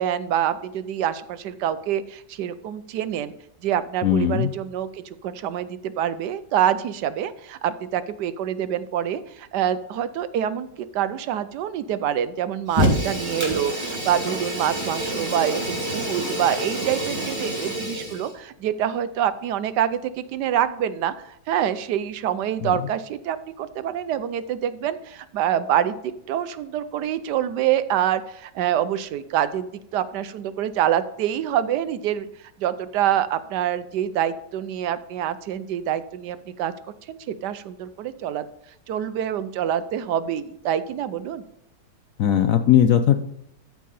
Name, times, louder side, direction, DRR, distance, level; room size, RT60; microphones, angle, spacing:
voice 1, 0.0-3.3 3.6-10.7 10.9-21.1 21.5-26.0 26.3-32.3 32.6-36.7 37.1-38.5 38.9-41.4, right 10 dB, 75° right, 13 dB, 1.2 m, -26 dB
voice 2, 4.0-4.5 22.6-22.7 42.2-43.2, left 10 dB, 70° left, 8 dB, 0.8 m, -18 dB
Fire, 12.7-18.3, equal, 15° right, 2.7 m, -27 dB
14.0 x 4.6 x 4.2 m, 0.72 s
omnidirectional pair, 1.9 m